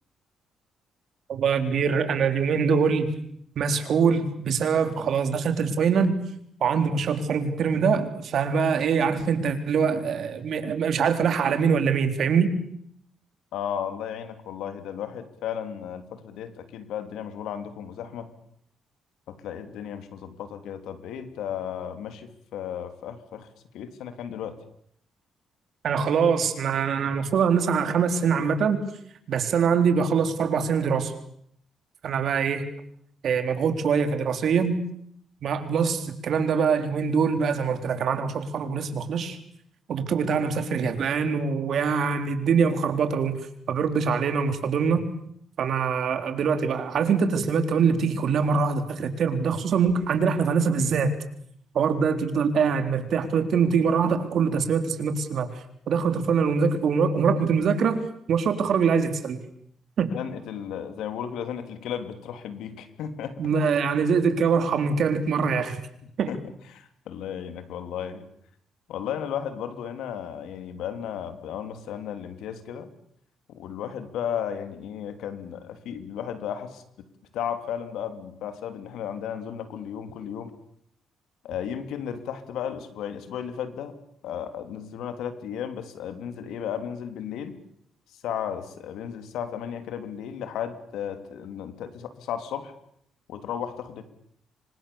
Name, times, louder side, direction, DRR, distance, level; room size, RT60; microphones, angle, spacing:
voice 1, 1.3-3.1 3.6-6.2 6.6-12.6 25.8-28.8 29.3-31.1 32.0-32.7 33.2-34.8 35.4-39.4 39.9-43.3 43.7-45.1 45.6-51.1 51.7-55.5 55.9-58.0 58.3-59.4 60.0-60.1 63.4-65.8 66.2-66.3, right 6 dB, 65° right, 7 dB, 3.9 m, -23 dB
voice 2, 13.5-18.3 19.3-23.5 23.7-24.5 60.1-63.4 66.2-66.4 66.7-68.3 68.9-72.9 73.5-76.8 77.3-80.5 81.4-83.9 84.2-87.6 88.2-92.7 93.3-94.0, left 9 dB, 85° left, 9 dB, 3.3 m, -34 dB
27.0 x 25.5 x 7.2 m, 0.69 s
cardioid pair, 90°, 0 cm